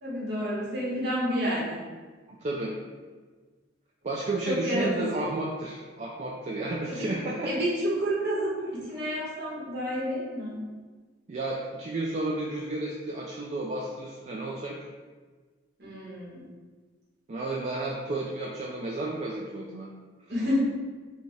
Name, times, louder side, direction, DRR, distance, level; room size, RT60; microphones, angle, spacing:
voice 1, 0.0-1.8 4.4-5.3 6.9-7.1 7.4-10.6 15.8-16.5 20.3-20.6, equal, 55° right, -6 dB, 1.3 m, -29 dB
voice 2, 2.4-2.7 4.0-7.5 11.3-14.8 17.3-19.9, right 2 dB, 35° right, -3 dB, 0.4 m, -32 dB
5.0 x 2.4 x 3.2 m, 1.4 s
head